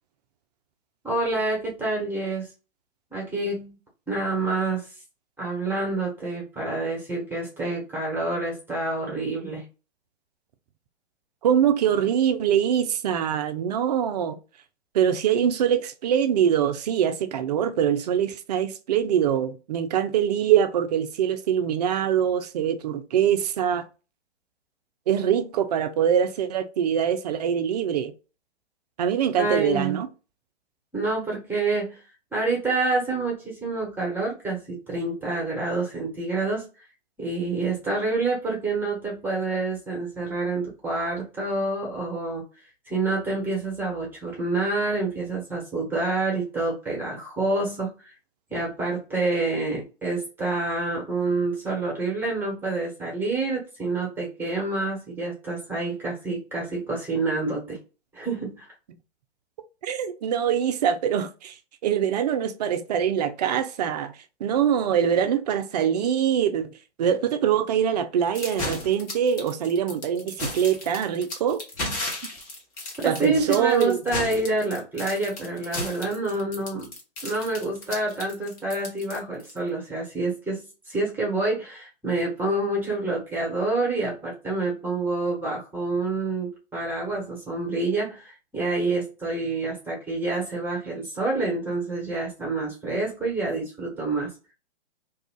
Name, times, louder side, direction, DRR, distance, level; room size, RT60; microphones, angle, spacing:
voice 1, 1.0-2.5 3.1-3.8 4.1-4.9 5.4-9.6 29.4-30.0 30.9-32.0 32.3-36.7 37.2-42.5 42.9-48.1 48.5-57.8 58.1-58.6 73.0-76.9 77.2-94.3, right 2 dB, 5° right, 1.2 m, -27 dB
voice 2, 11.4-14.4 14.9-23.9 25.1-28.1 29.0-30.1 59.8-61.6 61.8-64.1 64.4-66.7 67.0-71.6 73.0-74.0, right 9 dB, 40° right, 0.4 m, -23 dB
sound 1, 68.3-79.6, left 2 dB, 25° left, 1.0 m, -34 dB
2.7 x 2.4 x 3.6 m
figure-of-eight pair, 120°, 33 cm